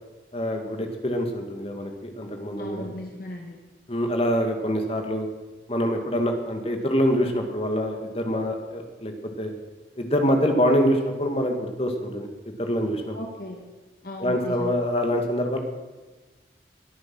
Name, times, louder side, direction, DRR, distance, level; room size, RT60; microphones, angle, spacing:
voice 1, 0.3-2.9 3.9-5.3 5.7-9.5 10.0-13.2 14.2-15.6, equal, 35° left, 4 dB, 2.1 m, -25 dB
voice 2, 2.6-3.6 13.1-13.6 14.0-14.7, left 1 dB, 55° left, 1 dB, 1.9 m, -36 dB
20.5 x 9.6 x 6.2 m, 1.2 s
head